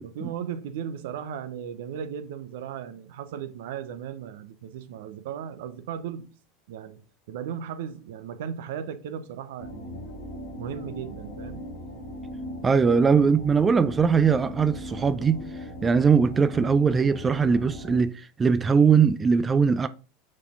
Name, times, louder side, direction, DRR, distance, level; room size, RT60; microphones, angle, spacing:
voice 1, 0.0-6.3 6.7-7.0 7.3-10.1 10.6-11.6, right 8 dB, 70° right, 0.7 m, -36 dB
sound 1, 9.6-18.0, left 1 dB, 80° left, 2.2 m, -39 dB
voice 2, 12.6-15.4 15.8-19.9, right 5 dB, 25° right, 0.4 m, -21 dB
6.3 x 4.2 x 3.6 m
hypercardioid pair, 80°, 0 cm